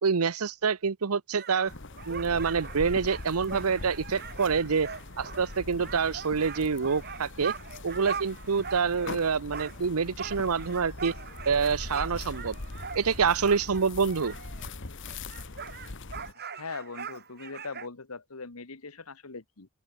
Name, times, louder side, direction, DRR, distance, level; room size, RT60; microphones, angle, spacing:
voice 1, 0.0-1.7 2.1-4.9 5.2-7.5 7.8-11.1 11.5-12.6 12.9-14.3, right 5 dB, 90° right, 0.8 m, -27 dB
sound 1, 1.3-9.2 9.5-14.8 15.0-17.9, right 6 dB, 50° right, 4.7 m, -42 dB
sound 2, 1.7-16.3, left 2 dB, 60° left, 1.6 m, -42 dB
voice 2, 16.4-19.7, left 4 dB, 85° left, 1.6 m, -41 dB
open air
head